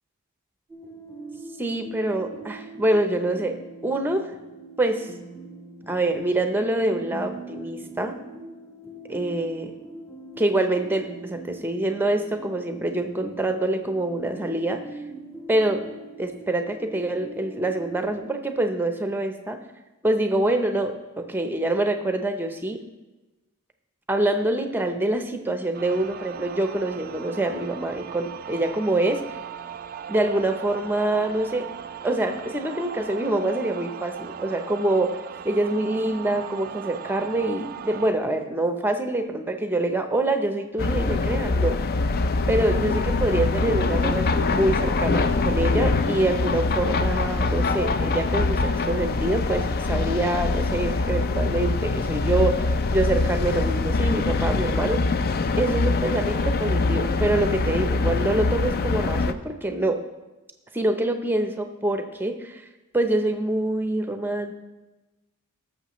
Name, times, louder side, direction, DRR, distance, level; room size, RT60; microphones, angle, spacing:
sound 1, 0.7-18.2, right 3 dB, 15° left, 3.0 m, -42 dB
voice 1, 1.6-3.6 3.8-4.3 4.8-5.1 5.9-8.2 9.1-9.7 10.4-14.8 15.5-15.8 16.2-19.6 20.0-22.8 24.1-29.2 30.1-31.7 32.0-35.2 35.4-41.8 42.5-55.1 55.6-60.0 60.7-62.6 62.9-64.5, right 1 dB, 10° right, 6 dB, 0.7 m, -25 dB
sound 2, 25.7-38.1, right 8 dB, 40° right, 0.4 m, -38 dB
sound 3, 40.8-59.3, left 3 dB, 45° left, 0.4 m, -24 dB
18.0 x 6.9 x 3.1 m, 1.1 s
head